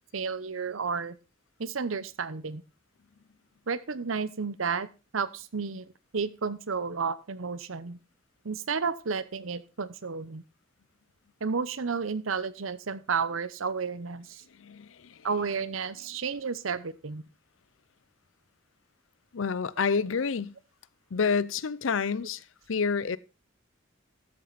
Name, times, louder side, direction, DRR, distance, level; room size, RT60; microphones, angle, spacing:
voice 1, 0.1-1.2 1.6-2.6 3.7-4.9 5.1-8.0 8.4-10.4 11.4-14.4 15.2-17.2, right 5 dB, 80° right, 0.8 m, -32 dB
voice 2, 14.5-15.3 19.3-20.5 21.1-23.2, left 5 dB, 70° left, 0.6 m, -29 dB
13.0 x 7.7 x 4.0 m
head